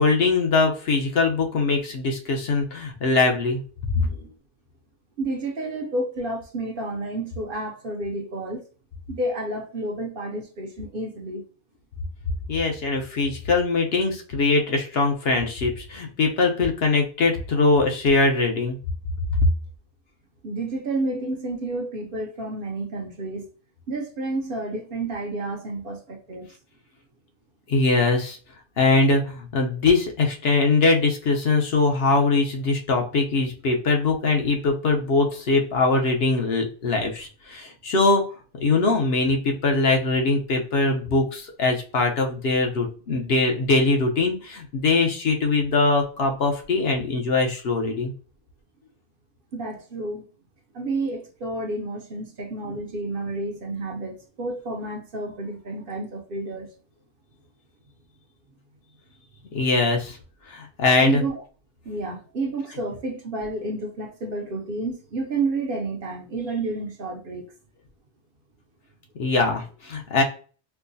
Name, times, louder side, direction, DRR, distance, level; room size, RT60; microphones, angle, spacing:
voice 1, 0.0-3.9 12.5-18.8 27.7-28.4 28.8-38.2 38.5-48.1 59.5-60.2 60.5-61.2 69.2-70.2, left 3 dB, 65° left, 0.9 m, -22 dB
voice 2, 3.9-4.3 5.2-8.7 9.1-11.4 20.4-23.5 23.9-26.5 49.5-50.2 50.7-56.7 61.0-61.4 61.8-67.5, right 2 dB, 55° right, 0.8 m, -30 dB
4.5 x 2.0 x 2.6 m
omnidirectional pair, 1.2 m